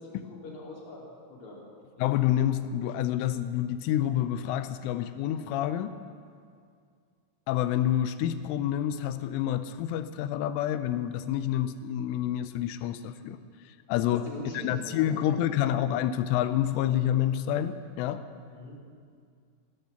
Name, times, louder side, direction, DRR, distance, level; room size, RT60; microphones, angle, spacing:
voice 1, 0.0-1.6 14.0-15.6 18.5-18.8, left 1 dB, 45° left, -4 dB, 3.7 m, -43 dB
voice 2, 2.0-5.9 7.5-13.4 13.9-14.2 14.5-18.2, left 11 dB, 85° left, 12 dB, 3.1 m, -28 dB
16.5 x 10.5 x 6.9 m, 2.2 s
omnidirectional pair, 5.6 m